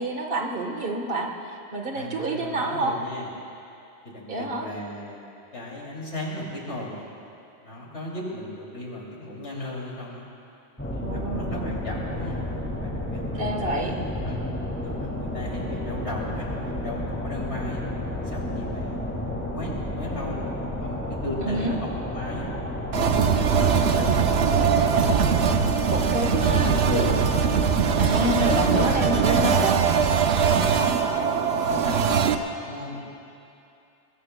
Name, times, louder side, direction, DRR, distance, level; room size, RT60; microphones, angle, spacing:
voice 1, 0.0-3.0 4.3-4.7 11.0-11.8 13.4-13.9 21.4-21.8 25.9-26.8 28.0-29.8, right 1 dB, 55° right, 1 dB, 1.5 m, -28 dB
voice 2, 1.9-3.3 4.0-5.2 5.5-7.1 7.6-10.3 10.9-12.4 12.7-14.4 14.8-17.8 18.2-20.4 20.8-22.5 22.9-25.6 26.0-27.2 27.5-27.7 28.0-30.9 31.3-32.2 32.6-33.1, left 1 dB, 90° left, -3 dB, 3.0 m, -36 dB
sound 1, 10.8-29.6, left 1 dB, 10° left, 1.8 m, -31 dB
sound 2, 22.9-32.3, right 6 dB, 75° right, 1.0 m, -21 dB
22.0 x 21.5 x 2.2 m, 2.7 s
omnidirectional pair, 1.1 m